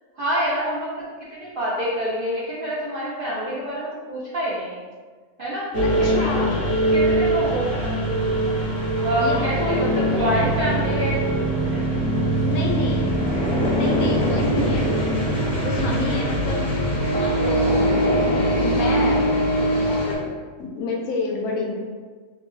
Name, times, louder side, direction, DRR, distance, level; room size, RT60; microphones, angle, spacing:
voice 1, 0.2-1.0 1.3-4.8 5.4-5.7 6.2-6.3 6.6-8.6 9.0-11.2 11.7-12.2 18.7-19.0, equal, 55° right, -8 dB, 0.6 m, -27 dB
sound 1, 5.7-20.2, right 1 dB, 50° left, 0.8 m, -22 dB
voice 2, 5.8-6.6 9.2-10.4 12.4-13.2 13.7-14.9 15.6-16.6 17.1-18.2 18.6-19.2 19.9-20.3 20.6-21.8, left 3 dB, 75° left, 0 dB, 1.0 m, -28 dB
3.1 x 2.5 x 3.1 m, 1.4 s
omnidirectional pair, 1.6 m